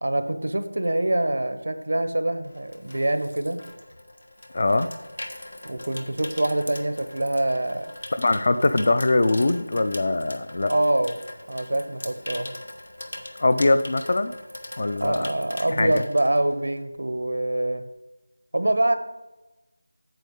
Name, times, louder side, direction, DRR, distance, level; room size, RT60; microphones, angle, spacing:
voice 1, 0.0-3.6 5.6-7.9 10.7-11.2 11.5-12.6 15.0-17.8 18.5-18.9, right 1 dB, 75° right, 10 dB, 1.0 m, -25 dB
Water tap faucet / Sink (filling or washing), 2.0-17.0 17.3-17.5, left 1 dB, 90° left, 1.3 m, -41 dB
voice 2, 4.5-4.9 8.1-10.7 13.4-14.3 14.8-15.3 15.8-16.0, left 2 dB, 40° left, 12 dB, 0.5 m, -22 dB
9.1 x 7.3 x 3.8 m, 1.1 s
figure-of-eight pair, 175°, 0 cm